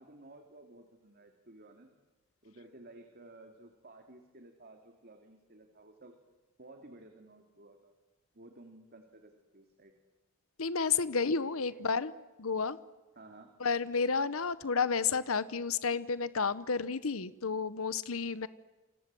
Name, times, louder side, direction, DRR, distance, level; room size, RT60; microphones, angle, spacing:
voice 1, 0.0-1.9 2.4-6.2 6.6-7.9 8.3-9.9 11.1-12.1 13.1-13.5, right 2 dB, 50° right, 5 dB, 2.7 m, -55 dB
voice 2, 10.6-12.1 12.4-12.8 13.6-18.5, left 5 dB, 85° left, 16 dB, 0.9 m, -31 dB
28.0 x 26.0 x 7.7 m, 1.2 s
head